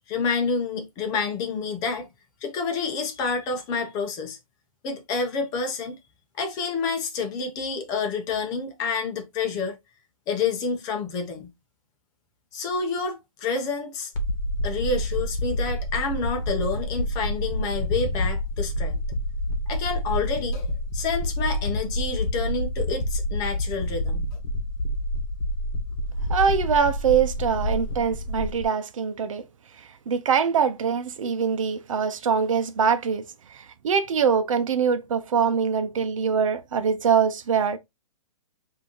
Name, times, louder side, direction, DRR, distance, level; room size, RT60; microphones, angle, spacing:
voice 1, 0.1-2.1 2.4-4.4 4.8-6.0 6.4-9.8 10.3-11.5 12.5-14.1 14.6-19.0 19.7-24.3, left 4 dB, 20° left, 0.7 m, -28 dB
sound 1, 14.2-28.6, equal, 40° left, 1.2 m, -28 dB
voice 2, 26.3-29.4 30.1-33.2 33.5-37.8, right 6 dB, 65° right, 0.8 m, -23 dB
5.9 x 2.8 x 2.9 m
hypercardioid pair, 155°, 18 cm